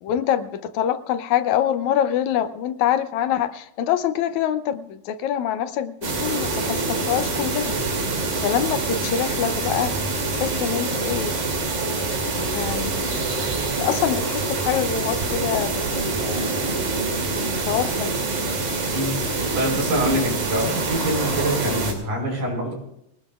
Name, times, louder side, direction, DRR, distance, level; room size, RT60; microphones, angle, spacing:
voice 1, 0.0-7.8 8.4-9.9 10.3-11.3 12.5-13.2 13.8-15.9 16.2-16.5 17.7-18.2, left 10 dB, 75° left, 10 dB, 2.0 m, -25 dB
sound 1, 6.0-21.9, right 3 dB, 65° right, 4.3 m, -25 dB
voice 2, 19.6-22.7, right 1 dB, 85° right, -1 dB, 6.8 m, -25 dB
22.5 x 19.0 x 2.5 m, 0.79 s
omnidirectional pair, 3.6 m